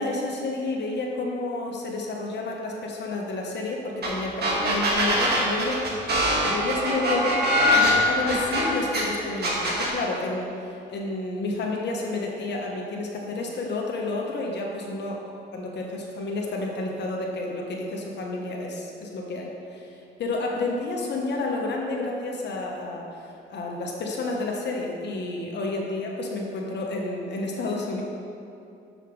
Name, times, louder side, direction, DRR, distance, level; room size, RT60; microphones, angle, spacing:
voice 1, 0.0-15.2 15.5-28.0, left 2 dB, 60° left, -1 dB, 1.1 m, -30 dB
sound 1, 4.0-4.1 4.4-9.0 9.4-9.9, equal, 55° right, 1.8 m, -22 dB
7.1 x 5.7 x 4.7 m, 2.6 s
cardioid pair, 90°, 20 cm